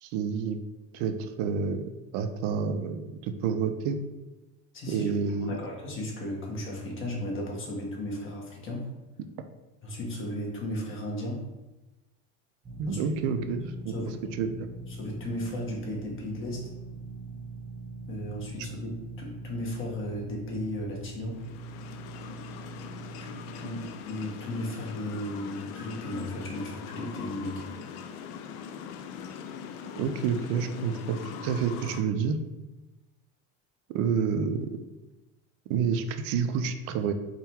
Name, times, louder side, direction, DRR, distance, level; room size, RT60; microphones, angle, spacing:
voice 1, 0.0-0.6 0.9-1.8 2.1-4.0 4.9-5.6 12.8-13.9 14.4-14.7 30.0-32.4 33.9-34.8 35.7-37.1, right 6 dB, 75° right, 8 dB, 0.5 m, -29 dB
voice 2, 4.7-5.1 5.4-8.9 9.8-11.5 12.9-13.0 13.9-14.2 14.9-16.7 18.1-21.5 23.2-27.7, left 1 dB, 35° left, -1 dB, 1.0 m, -35 dB
sound 1, 12.6-23.8, right 2 dB, 15° right, 1.0 m, -42 dB
sound 2, 21.3-32.0, left 7 dB, 75° left, 0.5 m, -41 dB
3.7 x 2.2 x 4.3 m, 1.1 s
cardioid pair, 135°, 37 cm